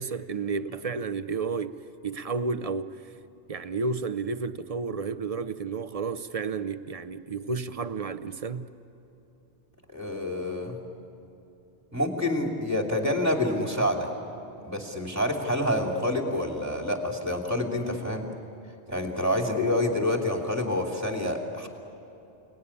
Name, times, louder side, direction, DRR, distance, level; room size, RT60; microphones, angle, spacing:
voice 1, 0.0-3.0 3.5-8.7, right 4 dB, 40° right, 12 dB, 0.7 m, -31 dB
voice 2, 9.9-10.8 11.9-14.1 14.6-18.2 18.9-21.7, left 1 dB, 15° right, 2 dB, 2.9 m, -27 dB
29.5 x 19.0 x 9.9 m, 3.0 s
omnidirectional pair, 1.1 m